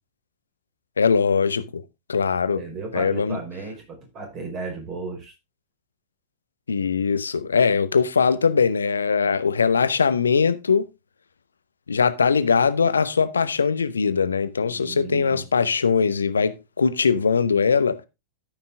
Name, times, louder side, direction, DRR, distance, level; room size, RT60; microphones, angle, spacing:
voice 1, 1.0-1.8 2.1-2.6 2.9-3.4 6.7-10.8 11.9-18.0, left 5 dB, 75° left, 0.8 m, -21 dB
voice 2, 2.6-5.3 14.7-15.4, right 3 dB, 35° right, 4.9 m, -34 dB
13.5 x 6.0 x 3.6 m
figure-of-eight pair, 90°, 0 cm